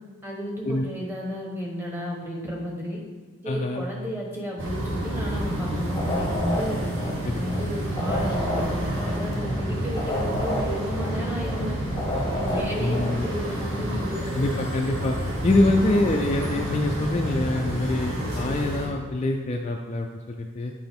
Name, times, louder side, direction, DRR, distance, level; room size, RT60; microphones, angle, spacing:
voice 1, 0.2-3.0 3.4-6.9 7.3-11.8 12.3-14.2 15.6-15.8, equal, 10° right, -2 dB, 1.1 m, -33 dB
voice 2, 3.5-3.8 7.2-7.4 12.8-13.3 14.3-15.2 15.4-20.7, left 2 dB, 30° left, 1 dB, 0.4 m, -25 dB
sound 1, 4.6-18.9, right 1 dB, 60° right, 2.1 m, -29 dB
sound 2, 5.9-7.6 7.9-11.6 11.9-13.2, left 1 dB, 15° left, 0.8 m, -31 dB
7.9 x 4.8 x 3.6 m, 1.5 s
head